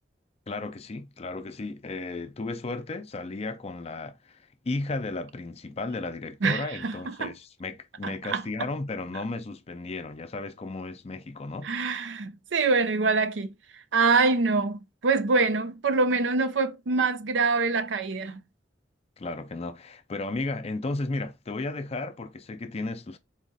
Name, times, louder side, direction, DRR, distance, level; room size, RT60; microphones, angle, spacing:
voice 1, 0.5-4.4 4.6-11.7 19.2-23.2, left 2 dB, 35° left, 0.5 m, -34 dB
voice 2, 6.4-7.3 8.0-8.7 11.6-18.4, right 4 dB, 85° right, 0.5 m, -25 dB
4.0 x 2.4 x 4.0 m
head